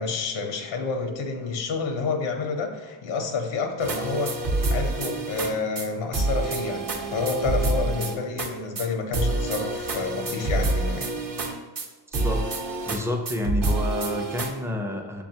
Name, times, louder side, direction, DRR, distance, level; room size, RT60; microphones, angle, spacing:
voice 1, 0.0-11.1, left 4 dB, 85° left, 4 dB, 0.7 m, -29 dB
sound 1, 3.8-5.5 5.8-5.9 6.1-8.5 8.8-8.9 9.1-11.9 12.1-13.0 13.3-14.5, right 2 dB, 45° right, 0.8 m, -27 dB
voice 2, 12.9-15.2, left 1 dB, 5° right, 3 dB, 0.4 m, -29 dB
6.8 x 2.3 x 2.7 m, 1.3 s
cardioid pair, 85°, 49 cm